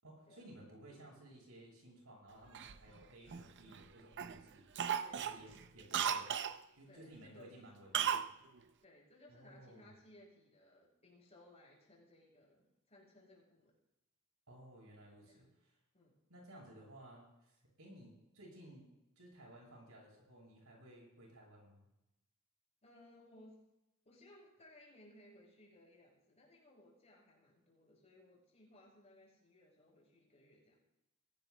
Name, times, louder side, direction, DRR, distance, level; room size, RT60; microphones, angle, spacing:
voice 1, 0.0-4.7 5.1-6.4 6.8-8.3 9.3-9.9 14.5-15.8 16.3-18.9 19.2-21.9, right 1 dB, 80° right, -1 dB, 7.2 m, -57 dB
Cough, 2.5-3.8 4.2-4.4 4.7-6.6 7.9-8.3 8.6-8.7, right 8 dB, 55° right, 0.6 m, -36 dB
voice 2, 4.8-5.6 6.9-8.0 8.8-13.7 15.2-15.4 15.9-16.2 22.8-23.6 24.0-30.8, left 1 dB, 30° left, -3 dB, 6.2 m, -62 dB
23.5 x 18.0 x 2.2 m, 0.90 s
head